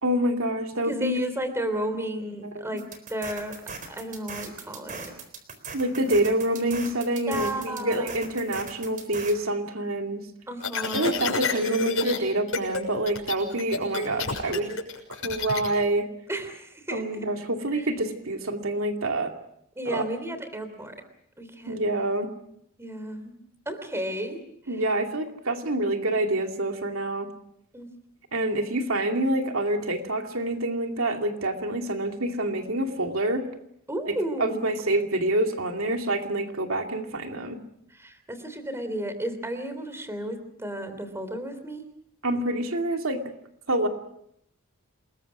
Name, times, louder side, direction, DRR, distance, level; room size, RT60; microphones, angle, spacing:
voice 1, 0.0-1.2 2.5-2.7 5.7-10.2 10.9-14.8 15.1-16.1 16.9-19.3 19.9-20.0 21.7-22.3 24.7-27.3 28.3-33.5 34.4-37.6 42.2-43.2 43.7-43.9, right 1 dB, 80° right, 4 dB, 2.5 m, -27 dB
voice 2, 0.8-3.6 3.9-5.1 7.3-8.1 10.5-11.2 16.3-17.3 17.7-17.9 19.8-21.0 21.4-21.9 22.8-23.3 23.7-24.8 27.7-27.9 33.9-34.7 37.9-41.8, right 1 dB, 15° right, 9 dB, 3.4 m, -33 dB
sound 1, 2.8-9.3, right 4 dB, 40° right, 4.0 m, -39 dB
sound 2, 10.6-12.2 12.5-12.8 13.1-15.7, left 3 dB, 70° left, 6.6 m, -28 dB
28.5 x 21.5 x 6.1 m, 0.72 s
head